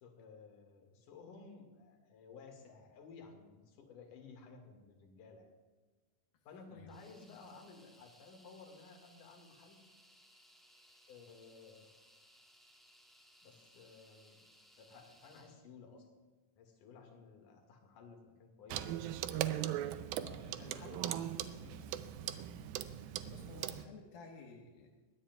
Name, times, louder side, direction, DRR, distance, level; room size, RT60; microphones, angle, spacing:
voice 1, 0.0-5.5 6.4-9.8 11.1-11.9 13.4-14.4 14.8-16.1 16.6-19.0 20.2-21.8, left 4 dB, 65° left, 3 dB, 3.2 m, -55 dB
sound 1, 6.9-15.6, equal, ahead, 1.0 m, -64 dB
Clock, 18.7-23.9, right 12 dB, 85° right, 2.5 m, -39 dB
voice 2, 22.9-24.9, left 3 dB, 80° left, 1 dB, 3.1 m, -54 dB
22.0 x 18.5 x 2.4 m, 1.3 s
omnidirectional pair, 4.1 m